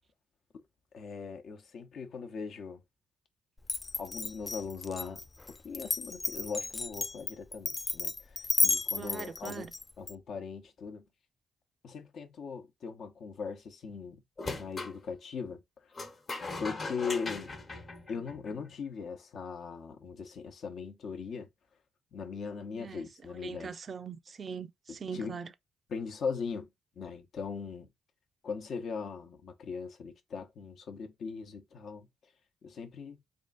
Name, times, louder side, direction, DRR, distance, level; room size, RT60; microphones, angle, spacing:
voice 1, 0.9-2.8 4.0-5.3 5.6-9.7 10.0-11.0 11.8-14.2 14.5-15.6 16.6-17.6 18.1-21.5 22.1-23.8 24.9-25.4 25.9-26.7 27.0-27.9 28.4-32.1 32.6-33.2, left 5 dB, 65° left, 0.9 m, -39 dB
Glass, 3.6-10.1, left 3 dB, 30° left, 0.3 m, -32 dB
voice 2, 9.0-9.7 22.8-23.0 23.4-25.5, right 6 dB, 50° right, 0.5 m, -41 dB
sound 1, 14.4-15.0 15.9-18.7, left 3 dB, 45° left, 1.1 m, -39 dB
3.6 x 2.4 x 3.9 m
hypercardioid pair, 50°, 0 cm